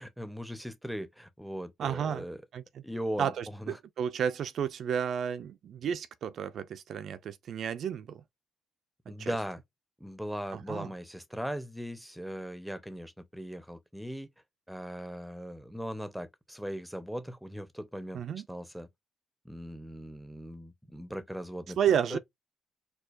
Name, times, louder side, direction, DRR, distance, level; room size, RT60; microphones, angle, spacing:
voice 1, 0.0-2.4 2.8-3.8 9.1-9.6 10.0-14.3 14.7-18.9 19.4-21.8 22.1-22.2, equal, ahead, 0.6 m, -39 dB
voice 2, 1.8-2.2 2.5-2.6 3.2-8.2 9.2-9.4 10.5-10.9 18.1-18.4 21.8-22.2, right 8 dB, 65° right, 0.3 m, -32 dB
4.3 x 2.2 x 2.5 m
cardioid pair, 90°, 0 cm